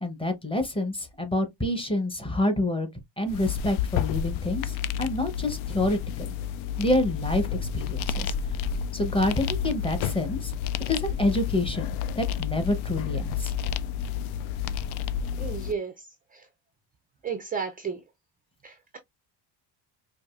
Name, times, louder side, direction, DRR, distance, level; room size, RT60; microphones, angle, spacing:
voice 1, 0.0-2.9 3.2-6.3 6.8-7.5 7.7-8.3 8.9-10.5 10.9-11.9 12.2-13.5, left 1 dB, 10° left, 0.7 m, -27 dB
sound 1, 3.3-15.7, left 8 dB, 75° left, 0.5 m, -30 dB
voice 2, 15.4-16.5 17.2-18.0 18.6-19.0, right 6 dB, 20° right, 0.4 m, -34 dB
4.7 x 2.6 x 2.4 m
cardioid pair, 140°, 49 cm